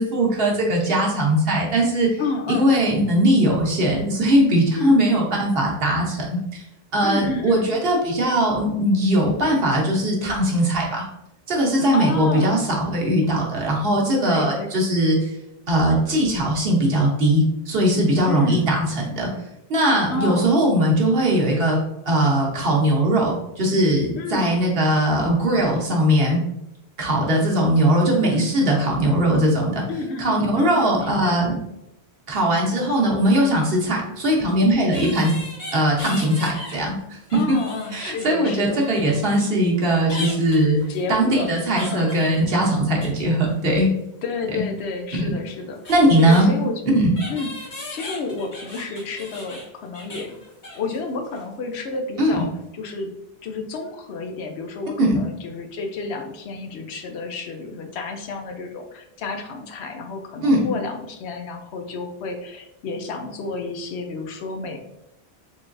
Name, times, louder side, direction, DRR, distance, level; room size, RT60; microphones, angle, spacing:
voice 1, 0.0-2.2 2.5-6.6 6.9-11.0 11.5-15.3 15.7-19.3 19.7-21.8 22.0-26.4 27.0-29.8 30.2-31.5 32.3-35.3 35.7-37.6 37.9-40.8 41.1-43.9 45.2-45.3 45.9-47.1 52.2-52.4 55.0-55.2 60.4-60.6, right 1 dB, 60° right, -2 dB, 1.1 m, -20 dB
voice 2, 2.2-2.7 4.7-5.0 7.0-7.7 11.9-12.6 14.2-14.7 18.2-18.8 20.1-20.5 24.1-24.5 28.2-28.5 29.9-31.4 35.0-35.2 37.3-38.8 40.9-41.5 41.8-42.2 44.2-46.8 47.3-50.4 50.7-53.1 53.4-64.8, left 3 dB, 80° left, 4 dB, 0.9 m, -30 dB
sound 1, 34.1-34.2 34.9-36.8 37.2-39.5 40.1-43.2 43.5-43.9 45.2-45.3 45.5-46.5 47.1-51.0 51.2-51.4 51.7-51.9, left 1 dB, 45° left, 1.2 m, -38 dB
3.8 x 3.3 x 2.5 m, 0.85 s
omnidirectional pair, 1.1 m